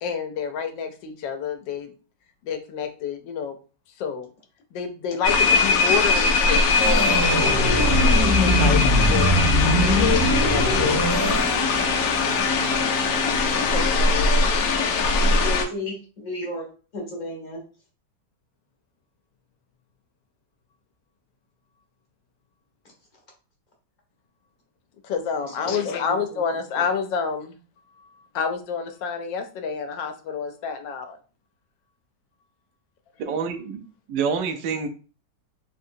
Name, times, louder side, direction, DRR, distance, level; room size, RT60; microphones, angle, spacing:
voice 1, 0.0-1.9 2.4-3.6 4.0-4.3 4.7-7.2 8.0-9.5 9.8-11.0 13.0-14.5 25.0-27.6 28.0-28.1 28.3-31.2, left 6 dB, 85° left, 7 dB, 1.3 m, -29 dB
sound 1, 5.2-15.7, left 3 dB, 65° left, 1.0 m, -21 dB
Organ, 6.7-14.1, equal, 20° right, 0.6 m, -23 dB
voice 2, 15.1-16.7 16.9-17.6 25.6-26.4 26.7-26.8, left 1 dB, 40° left, -1 dB, 0.6 m, -34 dB
voice 3, 33.2-34.9, right 6 dB, 85° right, 7 dB, 1.3 m, -27 dB
3.8 x 2.7 x 2.6 m, 0.36 s
omnidirectional pair, 1.9 m